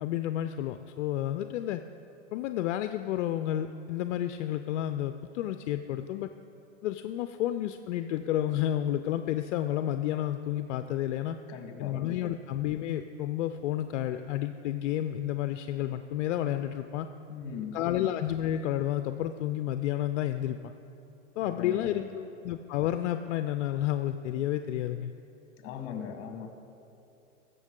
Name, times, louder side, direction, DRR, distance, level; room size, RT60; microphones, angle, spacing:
voice 1, 0.0-1.8 2.3-6.3 6.8-11.4 11.8-17.1 17.7-20.7 21.4-25.1, left 12 dB, 65° left, 9 dB, 0.5 m, -31 dB
voice 2, 11.5-12.0 17.3-17.8 21.4-22.2 25.6-26.5, left 7 dB, 35° left, 6 dB, 1.3 m, -40 dB
15.0 x 6.8 x 3.7 m, 2.9 s
hypercardioid pair, 125°, 38 cm